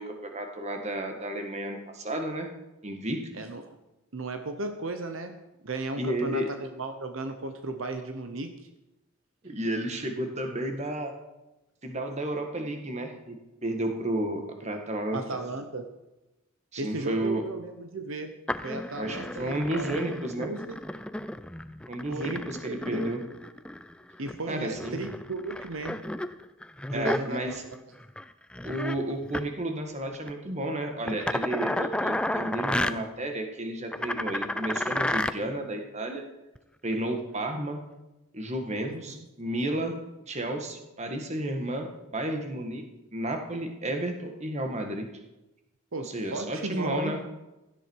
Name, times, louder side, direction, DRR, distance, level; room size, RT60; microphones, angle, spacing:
voice 1, 0.0-2.5 2.8-3.2 6.0-6.5 9.4-11.1 11.8-15.2 16.7-17.4 19.0-20.5 21.9-23.2 24.5-25.0 26.9-27.6 28.6-36.2 36.8-37.8 38.3-40.0 40.3-42.8 43.1-45.1 46.0-47.2, right 1 dB, 35° right, 4 dB, 1.8 m, -32 dB
voice 2, 4.1-5.4 5.6-8.6 15.1-15.9 16.8-18.3 18.6-20.8 22.1-23.1 24.2-26.0 26.9-27.6 38.9-39.3 45.9-47.1, right 2 dB, 70° right, 7 dB, 1.0 m, -35 dB
sound 1, 18.5-24.4 24.7-27.7 28.0-28.2 28.5-29.0 29.2-29.4 30.1-30.3 31.1-32.9 33.9-35.3 36.6-36.7, left 1 dB, 5° left, 0.4 m, -32 dB
16.5 x 12.5 x 4.8 m, 1.0 s
head